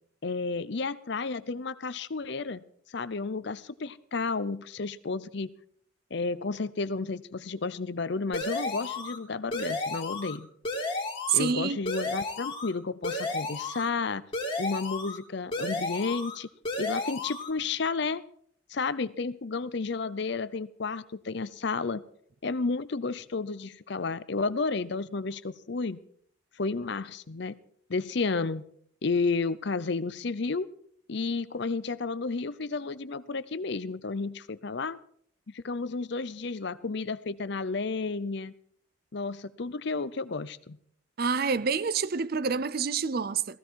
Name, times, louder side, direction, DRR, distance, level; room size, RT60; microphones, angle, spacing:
voice 1, 0.2-2.6 2.9-5.5 6.1-10.5 11.3-14.2 14.6-16.5 16.8-18.2 18.7-22.0 22.4-26.0 26.6-27.5 27.9-28.7 29.0-30.7 31.1-35.0 35.5-38.5 39.1-40.8, left 4 dB, 55° left, 0.6 m, -32 dB
sound 1, 8.3-9.2 9.5-10.4 10.6-11.5 11.8-12.7 13.0-13.9 14.3-15.2 15.5-16.4 16.6-17.5, left 2 dB, 25° left, 2.5 m, -33 dB
voice 2, 11.3-11.8 41.2-43.6, right 6 dB, 45° right, 0.5 m, -27 dB
16.0 x 15.5 x 4.6 m
head